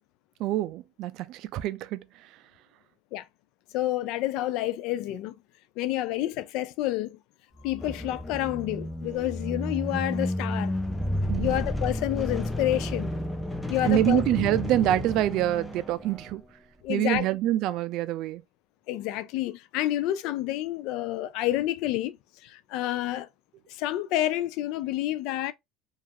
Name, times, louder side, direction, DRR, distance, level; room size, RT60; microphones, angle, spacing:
voice 1, 0.4-2.0 11.3-11.5 13.8-16.4 16.9-18.4, right 14 dB, 60° right, 0.3 m, -26 dB
voice 2, 3.7-5.4 5.8-7.2 7.6-10.8 11.4-13.1 13.7-14.2 16.8-17.3 18.9-22.2 22.4-23.3 23.7-25.5, left 14 dB, 65° left, 0.3 m, -29 dB
sound 1, 7.6-16.3, left 1 dB, 5° left, 0.5 m, -32 dB
2.9 x 2.4 x 2.7 m
supercardioid pair, 120°, 0 cm